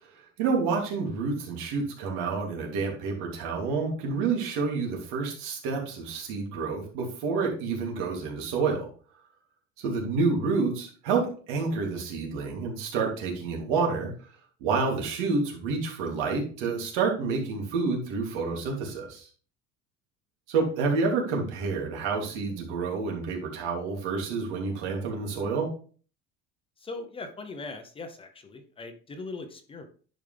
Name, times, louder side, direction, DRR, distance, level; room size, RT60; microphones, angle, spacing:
voice 1, 0.4-8.9 9.8-11.2 11.5-14.1 14.6-19.3 20.5-25.7, right 4 dB, 85° right, -1 dB, 3.0 m, -28 dB
voice 2, 26.8-29.9, left 3 dB, 20° left, 7 dB, 0.7 m, -40 dB
10.5 x 5.2 x 3.4 m, 0.41 s
cardioid pair, 170°, 30 cm